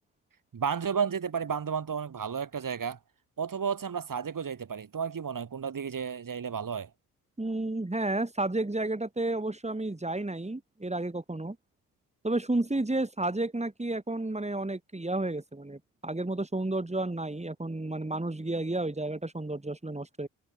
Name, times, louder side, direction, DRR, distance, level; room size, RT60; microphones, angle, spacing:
voice 1, 0.5-3.0 3.4-6.9, right 6 dB, 45° right, 6.9 m, -32 dB
voice 2, 7.4-11.6 12.2-20.3, right 2 dB, 15° right, 7.9 m, -31 dB
hypercardioid pair, 45°, 44 cm